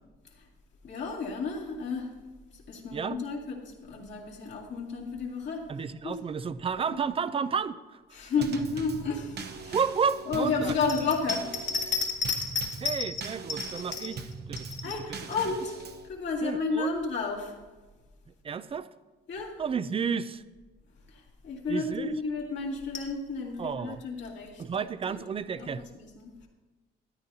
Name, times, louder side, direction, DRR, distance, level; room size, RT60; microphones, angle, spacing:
voice 1, 0.8-2.1 2.5-5.7 6.0-6.2 6.9-7.0 8.1-9.8 10.3-14.1 14.6-15.8 16.0-17.5 19.3-19.6 21.1-25.2 25.6-26.5, left 4 dB, 65° left, -2 dB, 2.3 m, -32 dB
voice 2, 5.7-8.0 9.7-10.8 12.8-14.2 14.5-14.6 16.4-16.9 18.4-18.9 19.6-20.4 21.7-22.2 23.6-24.0 24.6-25.8, right 6 dB, 30° right, 15 dB, 0.4 m, -31 dB
Drum kit / Snare drum / Bass drum, 8.4-16.1, right 4 dB, 55° right, 0.9 m, -41 dB
13.0 x 10.0 x 2.8 m, 1.2 s
cardioid pair, 90°, 20 cm